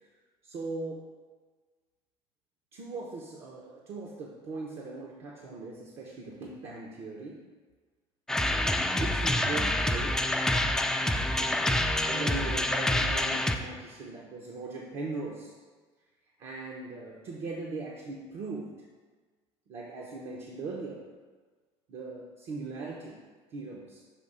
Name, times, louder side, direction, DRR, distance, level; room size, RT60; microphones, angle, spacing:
voice 1, 0.4-1.1 2.7-7.4 9.0-10.3 11.3-15.5 16.4-18.8 19.7-21.1 21.9-23.2 23.5-24.0, right 3 dB, 65° right, -2 dB, 0.8 m, -39 dB
sound 1, 8.3-13.6, left 1 dB, 5° left, 0.3 m, -27 dB
6.7 x 2.9 x 5.5 m, 1.4 s
cardioid pair, 130°, 11 cm